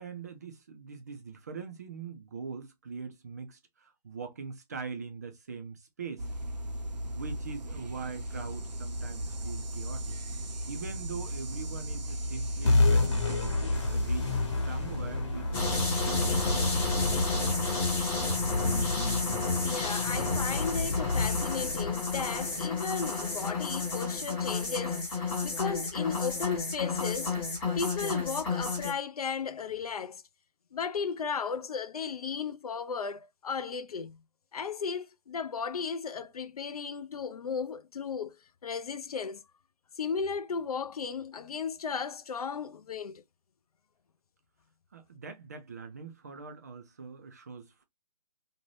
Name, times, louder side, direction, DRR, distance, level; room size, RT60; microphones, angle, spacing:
voice 1, 0.0-6.3 7.1-10.2 10.7-13.5 13.9-14.4 14.7-16.4 44.9-47.8, right 5 dB, 25° right, 0.4 m, -42 dB
sound 1, 6.2-17.6, equal, 80° right, 0.7 m, -37 dB
sound 2, 12.6-23.5, left 3 dB, 40° left, 1.0 m, -31 dB
sound 3, 15.5-28.9, left 3 dB, 10° left, 0.7 m, -31 dB
voice 2, 19.6-27.4 27.8-30.2 30.7-34.2 34.5-38.3 38.6-39.4 40.0-43.2, left 5 dB, 60° left, 0.4 m, -35 dB
2.6 x 2.2 x 3.1 m
figure-of-eight pair, 150°, 21 cm